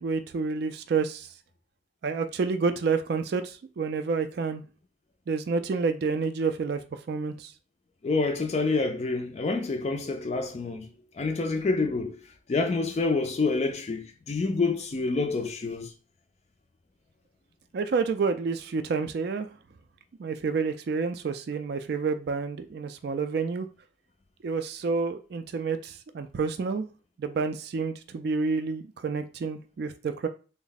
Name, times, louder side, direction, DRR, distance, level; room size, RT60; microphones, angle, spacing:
voice 1, 0.0-1.3 2.0-4.6 5.3-6.8 7.1-7.5 17.7-19.5 20.2-23.7 24.4-26.9 27.2-30.3, right 4 dB, 55° right, 0.3 m, -29 dB
voice 2, 8.0-10.9 11.1-12.2 12.5-15.9, left 3 dB, 35° left, 0.3 m, -27 dB
3.5 x 2.0 x 3.9 m
head